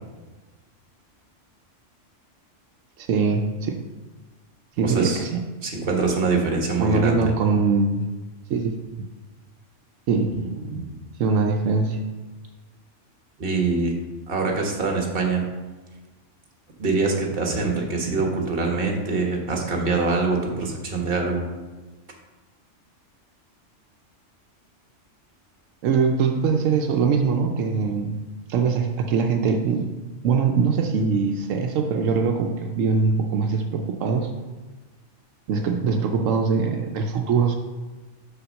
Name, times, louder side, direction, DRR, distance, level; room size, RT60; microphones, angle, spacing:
voice 1, 3.0-3.8 4.8-5.4 6.8-8.1 8.5-9.1 10.1-10.5 11.2-12.0 25.8-28.2 28.5-29.9 30.2-34.3 35.5-37.6, right 5 dB, 85° right, 4 dB, 1.0 m, -22 dB
voice 2, 4.8-5.2 5.6-7.2 10.4-10.9 13.4-13.9 14.3-15.4 16.8-21.5, right 3 dB, 50° right, 1 dB, 1.3 m, -24 dB
5.8 x 4.2 x 6.3 m, 1.2 s
omnidirectional pair, 1.3 m